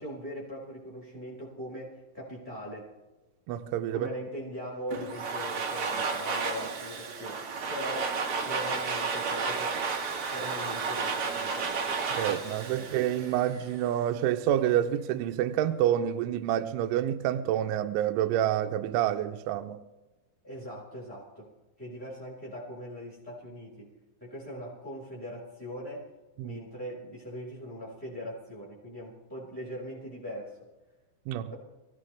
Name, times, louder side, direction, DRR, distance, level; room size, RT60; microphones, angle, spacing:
voice 1, 0.0-2.9 3.9-7.4 7.7-9.9 10.3-12.0 12.7-13.0 20.4-21.5 21.8-23.9 24.2-26.0 26.4-30.5, equal, ahead, -5 dB, 4.4 m, -40 dB
voice 2, 3.5-4.1 12.2-19.8 26.4-26.6 31.3-31.5, right 11 dB, 85° right, 7 dB, 3.1 m, -28 dB
Domestic sounds home sounds, 4.9-13.8, right 5 dB, 60° right, 1.4 m, -32 dB
25.0 x 16.0 x 3.4 m, 1.1 s
omnidirectional pair, 5.4 m